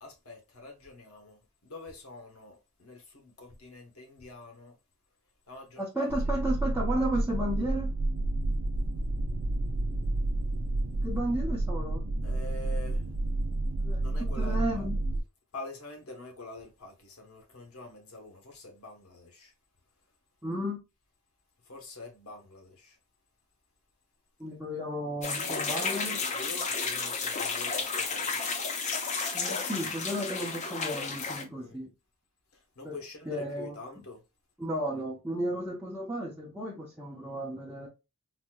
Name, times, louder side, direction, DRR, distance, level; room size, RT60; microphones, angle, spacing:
voice 1, 0.0-4.8 5.5-6.1 12.2-13.0 14.0-14.9 15.5-19.5 21.6-23.0 25.3-25.9 26.1-28.4 31.5-31.8 32.5-34.2 35.5-35.7, left 2 dB, 75° left, 1.1 m, -46 dB
voice 2, 5.8-7.9 11.0-12.1 13.8-14.0 14.4-15.0 20.4-20.8 24.4-26.2 29.3-31.9 32.8-33.0 33.3-33.8 34.6-37.9, equal, 10° right, 0.7 m, -33 dB
sound 1, 6.1-15.2, right 2 dB, 65° right, 0.6 m, -30 dB
sound 2, 25.2-31.4, left 4 dB, 30° left, 0.6 m, -32 dB
4.1 x 2.7 x 2.2 m
head